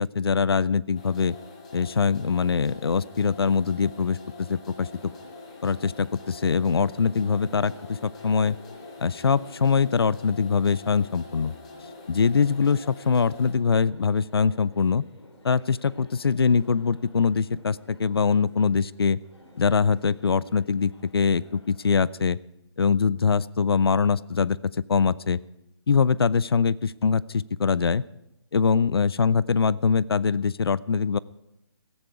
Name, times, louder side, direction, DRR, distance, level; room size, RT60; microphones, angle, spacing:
voice 1, 0.0-1.3 1.7-4.2 4.5-5.1 5.6-7.7 8.0-8.6 9.0-11.5 12.1-15.0 15.4-19.2 19.6-22.4 22.8-25.4 25.9-28.0 28.5-31.2, left 5 dB, 60° left, 21 dB, 0.5 m, -23 dB
sound 1, 0.9-13.5, left 3 dB, 15° left, 0.9 m, -45 dB
sound 2, 4.9-22.0, left 1 dB, 85° left, 4.2 m, -53 dB
17.0 x 14.5 x 4.8 m, 0.90 s
hypercardioid pair, 180°, 14 cm